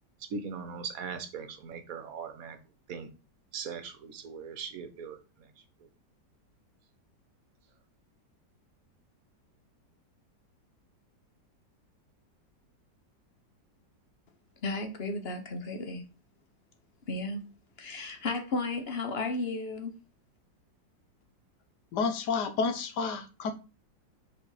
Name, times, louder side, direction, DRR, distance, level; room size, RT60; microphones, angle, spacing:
voice 1, 0.2-2.6 2.9-3.1 3.5-5.5 5.8-5.9, right 5 dB, 55° right, 1.3 m, -40 dB
voice 2, 14.6-16.0 17.1-17.4 17.8-19.9, left 2 dB, 45° left, 0.9 m, -33 dB
voice 3, 21.9-23.5, left 5 dB, 70° left, 1.5 m, -30 dB
5.1 x 4.3 x 4.8 m
omnidirectional pair, 1.9 m